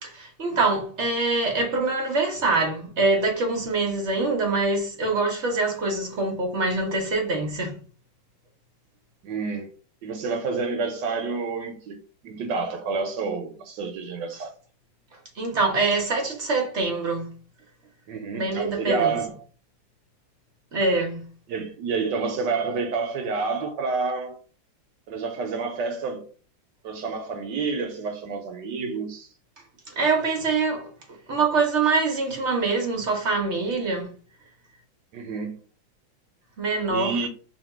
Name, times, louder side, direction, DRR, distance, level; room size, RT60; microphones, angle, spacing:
voice 1, 0.0-7.8 15.4-17.3 18.4-19.2 20.7-21.2 29.9-30.9 31.3-34.2 36.6-37.2, right 3 dB, 50° right, 0.8 m, -24 dB
voice 2, 9.2-9.7 10.0-12.0 12.2-14.5 18.1-19.3 21.5-24.4 25.1-26.3 26.8-29.3 35.1-35.6 36.9-37.3, right 4 dB, 70° right, 1.2 m, -29 dB
2.9 x 2.8 x 4.3 m
omnidirectional pair, 2.1 m